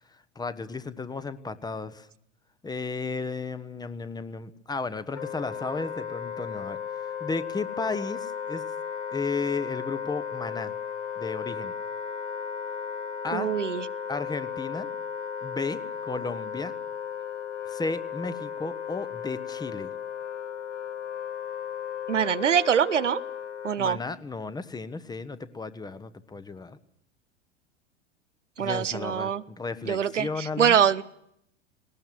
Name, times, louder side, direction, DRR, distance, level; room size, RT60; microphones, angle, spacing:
voice 1, 0.3-2.1 2.6-8.6 9.1-10.7 11.2-11.7 13.2-13.5 14.1-14.9 15.4-16.7 17.7-19.9 23.8-26.8 28.6-30.8, left 4 dB, 10° left, 13 dB, 1.1 m, -34 dB
Wind instrument woodwind instrument, 5.1-23.8, left 7 dB, 70° left, 1.7 m, -35 dB
voice 2, 13.3-13.9 22.1-23.2 23.6-24.0 28.6-29.4 29.9-31.0, right 8 dB, 80° right, 13 dB, 0.9 m, -24 dB
19.0 x 19.0 x 9.1 m, 0.73 s
figure-of-eight pair, 90°, 36 cm